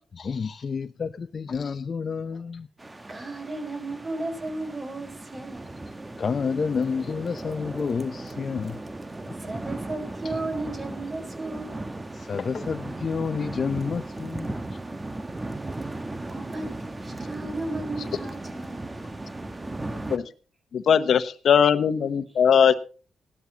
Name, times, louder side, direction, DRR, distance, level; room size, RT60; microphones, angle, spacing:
voice 1, 0.1-2.7 6.2-8.8 12.1-14.6, left 5 dB, 50° left, 0.6 m, -29 dB
sound 1, 2.8-20.2, right 2 dB, 25° right, 1.3 m, -36 dB
voice 2, 3.1-5.8 6.9-7.0 9.4-11.8 16.3-19.1 19.6-19.9, right 2 dB, 40° right, 4.8 m, -35 dB
voice 3, 20.7-22.8, left 7 dB, 70° left, 1.0 m, -20 dB
17.5 x 12.5 x 2.9 m
supercardioid pair, 60°, 0 cm